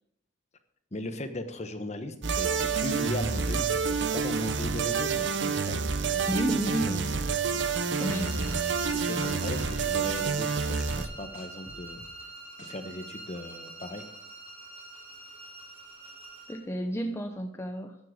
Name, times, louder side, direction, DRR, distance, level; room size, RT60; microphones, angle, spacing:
voice 1, 0.9-7.0 8.8-12.0 12.7-14.1, left 1 dB, 40° left, 8 dB, 1.1 m, -38 dB
sound 1, 2.2-11.1, right 5 dB, 70° right, 0.8 m, -28 dB
sound 2, 3.8-5.2 5.7-7.7 8.1-10.2 10.7-13.0, left 1 dB, 75° left, 2.0 m, -50 dB
voice 2, 6.3-7.1 8.0-8.5 16.5-18.0, equal, 15° left, 4 dB, 0.7 m, -31 dB
sound 3, 7.9-16.7, right 3 dB, 35° right, 3.3 m, -45 dB
12.5 x 7.6 x 5.1 m, 0.77 s
head